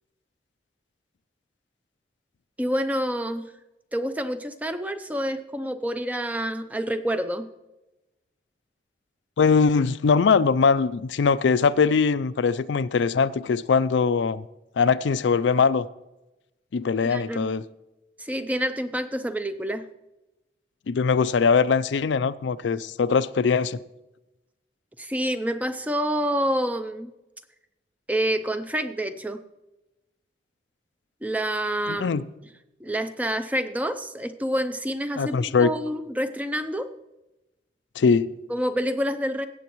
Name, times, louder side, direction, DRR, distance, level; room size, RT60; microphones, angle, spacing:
voice 1, 2.6-3.5 3.9-7.5 17.1-17.5 18.2-19.8 25.0-27.1 28.1-29.4 31.2-32.2 32.8-36.9 38.5-39.5, equal, 10° right, 0.5 m, -28 dB
voice 2, 9.4-14.4 14.8-15.9 16.7-17.6 20.9-23.8 31.9-32.2 35.2-35.7 38.0-38.3, left 5 dB, 80° left, 0.4 m, -21 dB
16.5 x 8.0 x 3.1 m
head